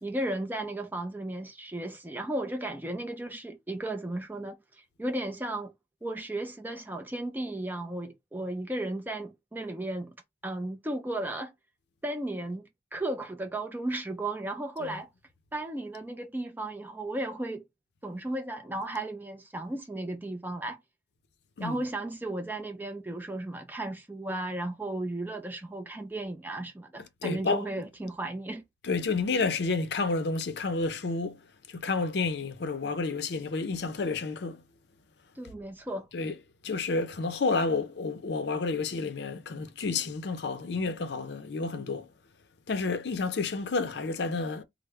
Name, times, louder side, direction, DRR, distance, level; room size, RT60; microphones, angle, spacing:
voice 1, 0.0-5.7 6.0-10.2 10.4-11.5 12.0-15.1 15.5-17.7 18.0-20.8 21.6-28.6 35.4-36.1, right 1 dB, 10° right, 0.4 m, -35 dB
voice 2, 27.2-27.7 28.8-31.4 31.7-34.6 36.1-36.4 36.6-42.1 42.7-44.6, left 4 dB, 65° left, 0.5 m, -30 dB
3.2 x 2.0 x 3.4 m
head